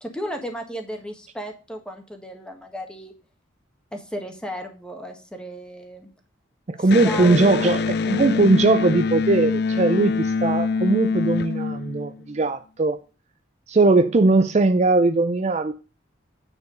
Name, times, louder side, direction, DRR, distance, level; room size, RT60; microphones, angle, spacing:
voice 1, 0.0-3.1 3.9-6.1 6.8-8.5, equal, 5° left, 1.6 m, -35 dB
voice 2, 6.7-13.0 13.7-15.7, right 3 dB, 35° right, 0.4 m, -19 dB
Electric guitar, 6.9-12.4, left 4 dB, 55° left, 0.4 m, -24 dB
9.6 x 4.7 x 6.4 m
head